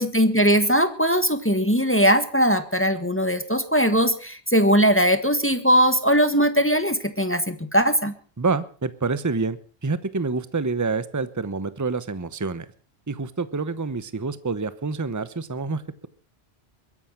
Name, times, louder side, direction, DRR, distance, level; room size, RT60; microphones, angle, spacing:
voice 1, 0.0-8.1, equal, 10° left, 10 dB, 1.3 m, -20 dB
voice 2, 8.4-12.7 13.1-16.1, right 4 dB, 20° right, 14 dB, 0.8 m, -27 dB
22.0 x 11.0 x 5.8 m, 0.40 s
omnidirectional pair, 1.1 m